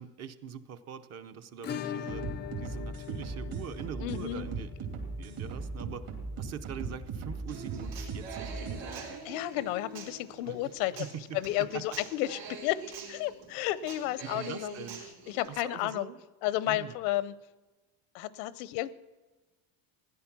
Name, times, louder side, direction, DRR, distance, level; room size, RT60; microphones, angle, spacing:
voice 1, 0.0-2.3 2.6-6.1 6.4-9.2 10.4-10.7 11.0-11.4 11.7-12.0 14.2-15.0 15.5-16.2 16.7-17.0, right 8 dB, 35° right, 11 dB, 0.7 m, -43 dB
Acoustic guitar / Strum, 1.6-10.2 10.5-10.6 10.9-11.0 11.3-11.4 13.5-13.6 14.7-14.8, left 8 dB, 25° left, 0.4 m, -44 dB
sound 1, 2.1-8.8, right 4 dB, 55° right, 2.9 m, -38 dB
voice 2, 4.0-4.5 9.2-11.1 11.3-12.8 13.1-14.8 15.3-16.1 16.4-17.4 18.1-18.9, left 15 dB, 85° left, 18 dB, 0.8 m, -32 dB
Human voice / Acoustic guitar, 7.5-15.5, right 5 dB, 85° right, 4.0 m, -45 dB
16.0 x 10.5 x 6.0 m, 1.2 s
cardioid pair, 150°, 44 cm